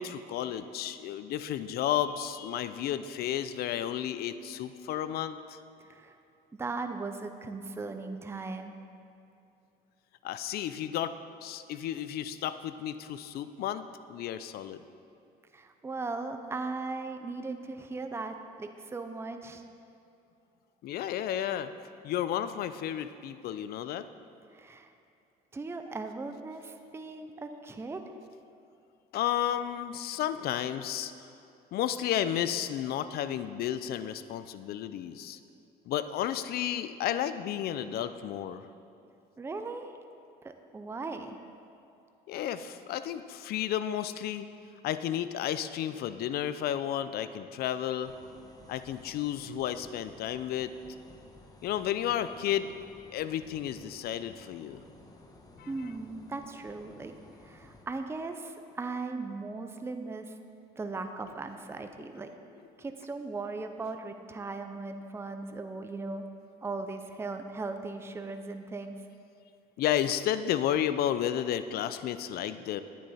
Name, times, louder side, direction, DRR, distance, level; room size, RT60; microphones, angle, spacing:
voice 1, 0.0-5.6 10.2-11.2 11.4-14.8 20.8-21.7 22.0-24.1 29.1-31.1 31.7-35.4 35.9-38.7 42.3-44.5 44.8-48.1 48.7-50.7 51.6-52.7 53.1-54.8 55.6-55.7 69.8-72.8, left 10 dB, 65° left, 12 dB, 0.5 m, -32 dB
voice 2, 5.8-6.2 6.5-8.8 15.5-19.6 24.5-24.9 25.5-28.0 39.4-39.9 40.4-41.4 55.7-57.1 57.4-60.4 60.8-62.3 62.8-66.3 66.6-69.0, right 3 dB, 15° right, 7 dB, 0.6 m, -38 dB
sound 1, 48.0-57.9, left 2 dB, 20° left, 1.1 m, -55 dB
10.0 x 9.4 x 4.2 m, 2.7 s
cardioid pair, 110°, 17 cm